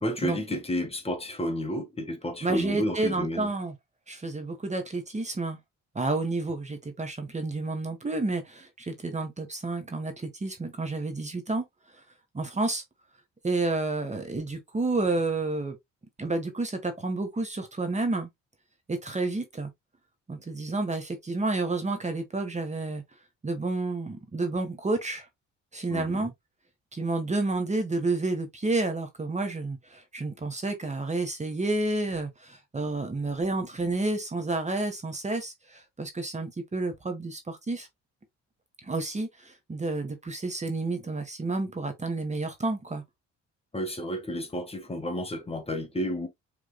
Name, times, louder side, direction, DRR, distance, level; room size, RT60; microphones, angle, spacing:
voice 1, 0.0-3.5 25.9-26.3 43.7-46.3, equal, 20° left, 1.5 m, -31 dB
voice 2, 2.4-3.7 4.1-5.6 5.9-11.6 12.3-12.8 13.4-15.8 16.2-18.3 18.9-19.7 20.3-23.0 23.4-25.3 25.7-26.3 26.9-37.9 38.8-43.0, right 2 dB, 25° right, 1.3 m, -30 dB
6.6 x 3.6 x 2.2 m
cardioid pair, 90°, 30 cm